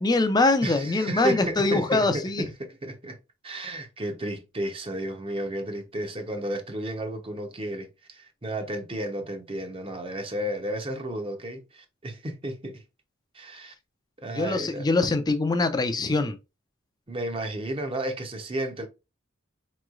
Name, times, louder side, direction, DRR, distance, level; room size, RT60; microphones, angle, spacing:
voice 1, 0.0-2.5 14.3-16.4, left 3 dB, 20° left, 0.4 m, -23 dB
voice 2, 0.6-3.2 3.4-12.8 13.3-13.7 14.2-14.9 17.1-18.9, right 1 dB, 25° right, 0.7 m, -32 dB
4.5 x 3.1 x 2.4 m
head